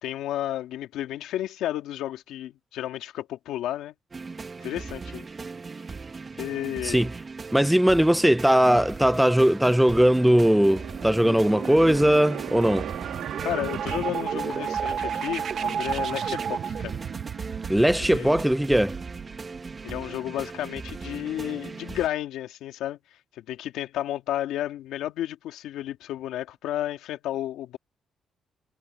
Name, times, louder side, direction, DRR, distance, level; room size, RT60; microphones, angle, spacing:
voice 1, 0.0-3.9 4.6-5.3 6.4-7.1 13.4-17.0 18.0-18.4 19.8-23.0 23.4-27.8, left 13 dB, 85° left, 2.3 m, -32 dB
sound 1, 4.1-22.1, right 4 dB, 35° right, 2.1 m, -39 dB
voice 2, 7.5-12.9 17.7-19.0, equal, 5° right, 0.6 m, -20 dB
sound 2, 9.9-15.1, right 11 dB, 80° right, 3.6 m, -38 dB
sound 3, 12.4-20.1, right 8 dB, 60° right, 1.1 m, -32 dB
cardioid pair, 90°, 0 cm